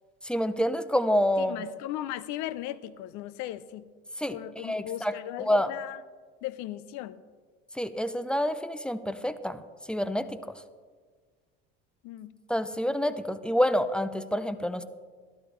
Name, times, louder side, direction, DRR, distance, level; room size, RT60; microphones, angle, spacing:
voice 1, 0.2-1.5 4.2-4.4 4.6-5.7 7.8-9.6 9.9-10.3 12.5-14.8, equal, 5° left, 13 dB, 0.5 m, -27 dB
voice 2, 1.4-3.9 4.3-6.0 6.4-7.2 12.0-12.3, left 13 dB, 65° left, 17 dB, 0.6 m, -37 dB
12.0 x 12.0 x 3.2 m, 1.6 s
supercardioid pair, 85°, 30 cm